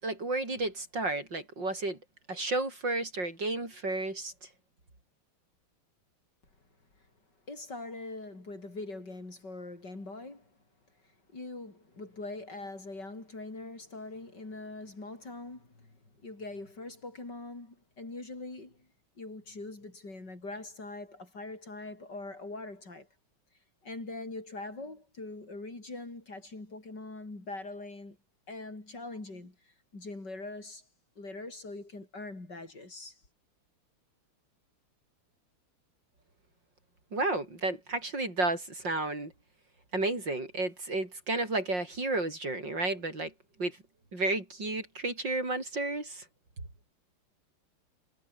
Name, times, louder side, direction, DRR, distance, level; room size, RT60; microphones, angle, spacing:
voice 1, 0.0-2.0 2.3-4.3 37.1-39.3 39.9-43.3 43.6-43.8 44.1-46.2, right 2 dB, 55° right, 7.5 m, -32 dB
voice 2, 7.5-10.5 11.0-18.9 19.2-23.1 23.8-28.2 28.5-30.8 31.2-33.2, left 2 dB, 50° left, 6.7 m, -43 dB
omnidirectional pair, 2.4 m